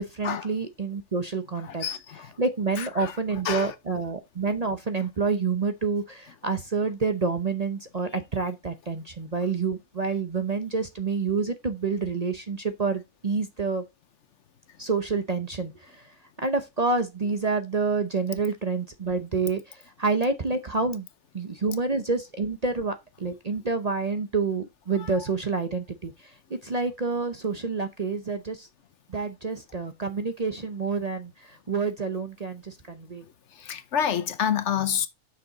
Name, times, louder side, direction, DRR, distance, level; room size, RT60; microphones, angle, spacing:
voice 1, 0.0-1.8 2.4-13.8 14.8-16.1 16.4-21.1 21.3-28.7 29.1-33.2, right 4 dB, 35° right, 0.8 m, -28 dB
voice 2, 1.6-2.4 2.8-3.2 3.4-3.7 25.0-25.2 33.5-35.1, left 8 dB, 60° left, 1.0 m, -28 dB
7.4 x 6.0 x 3.9 m
omnidirectional pair, 1.4 m